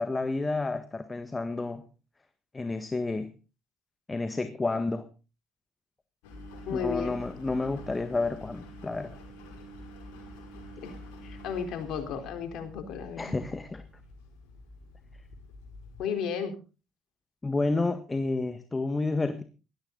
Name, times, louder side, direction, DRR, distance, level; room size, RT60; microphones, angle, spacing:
voice 1, 0.0-1.9 2.5-3.3 4.1-5.1 6.7-9.2 13.2-13.8 17.4-19.4, left 3 dB, 20° left, 9 dB, 1.6 m, -30 dB
Engine, 6.2-16.0, left 1 dB, 85° left, 5.8 m, -47 dB
voice 2, 6.7-7.2 10.8-10.9 11.2-13.4 16.0-16.5, left 7 dB, 65° left, 6 dB, 4.1 m, -33 dB
17.5 x 13.0 x 4.0 m, 0.33 s
supercardioid pair, 75°, 0 cm